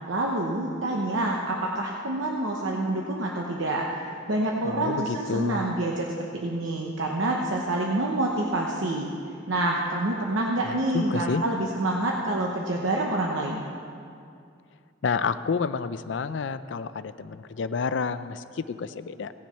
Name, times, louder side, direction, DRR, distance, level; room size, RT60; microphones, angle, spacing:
voice 1, 0.1-3.9 4.3-9.1 9.5-13.7, right 1 dB, 80° right, -1 dB, 0.9 m, -27 dB
voice 2, 4.6-5.6 10.6-11.4 15.0-19.3, left 5 dB, 65° left, 13 dB, 0.4 m, -29 dB
17.0 x 7.4 x 5.5 m, 2.4 s
head